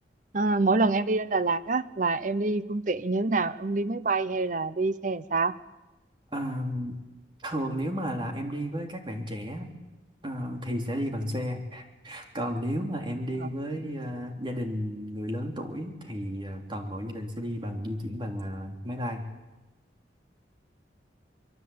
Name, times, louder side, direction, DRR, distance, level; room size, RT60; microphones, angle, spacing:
voice 1, 0.3-5.5 13.4-13.5, right 3 dB, 45° right, 15 dB, 0.8 m, -26 dB
voice 2, 6.3-7.0 7.4-9.7 10.2-19.2, equal, 25° right, 3 dB, 3.2 m, -33 dB
25.0 x 22.5 x 8.7 m, 1.1 s
head